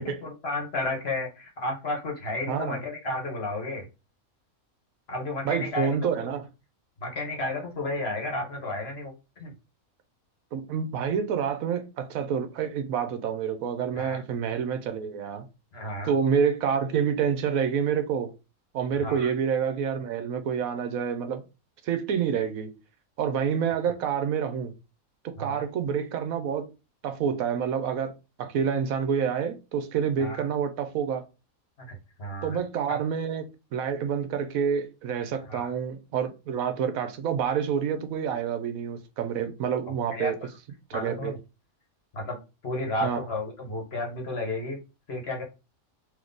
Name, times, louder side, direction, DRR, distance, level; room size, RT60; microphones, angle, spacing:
voice 1, 0.0-3.8 5.1-6.1 7.0-9.1 9.4-9.5 13.9-14.2 15.7-16.1 19.0-19.3 25.4-25.7 30.2-30.5 31.8-32.6 32.9-33.0 35.5-35.7 40.1-40.3 40.9-41.4 42.1-42.4 42.6-44.8 45.1-45.4, left 2 dB, 50° left, 1.3 m, -32 dB
voice 2, 2.5-2.8 5.4-6.5 10.5-15.4 16.0-18.3 18.7-21.4 21.8-22.7 23.2-24.7 25.2-26.7 27.0-28.1 28.4-31.2 32.4-40.3 40.9-41.3 43.0-43.2, right 7 dB, 80° right, 1.1 m, -28 dB
3.6 x 3.0 x 3.8 m
omnidirectional pair, 1.5 m